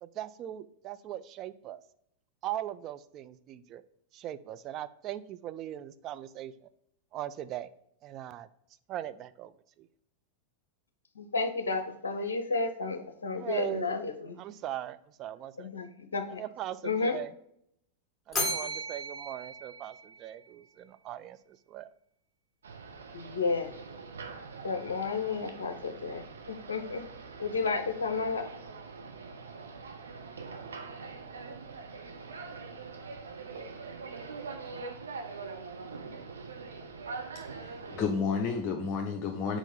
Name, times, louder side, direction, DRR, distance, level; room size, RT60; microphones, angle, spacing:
voice 1, 0.0-1.8 2.4-3.8 4.1-6.7 7.1-7.7 8.0-8.5 8.9-9.5 9.8-9.9 13.4-14.0 14.4-15.7 16.3-17.3 18.3-21.9, right 12 dB, 35° right, 13 dB, 0.4 m, -39 dB
voice 2, 11.2-14.4 15.6-16.4 16.8-17.2 23.1-23.7 24.6-27.0 27.4-28.5, left 4 dB, 70° left, 8 dB, 0.6 m, -32 dB
Bell, 18.3-20.6, equal, 10° left, 2.0 m, -35 dB
sound 1, 22.6-38.0, right 4 dB, 70° right, 0.7 m, -43 dB
voice 3, 37.6-39.6, left 5 dB, 30° left, 2 dB, 0.7 m, -31 dB
4.5 x 4.4 x 5.4 m, 0.73 s
figure-of-eight pair, 90°, 0 cm